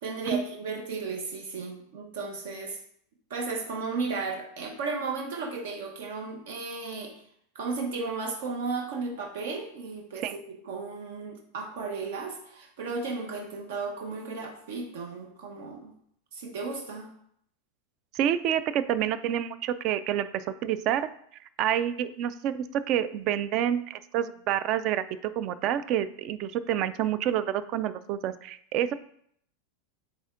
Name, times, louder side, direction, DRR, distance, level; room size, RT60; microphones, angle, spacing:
voice 1, 0.0-2.8 3.3-7.2 7.5-15.9 16.3-17.1, right 4 dB, 75° right, 2 dB, 1.0 m, -34 dB
voice 2, 18.1-21.1 21.6-28.9, right 10 dB, 35° right, 14 dB, 0.3 m, -28 dB
8.5 x 3.5 x 3.7 m, 0.68 s
supercardioid pair, 165°, 0 cm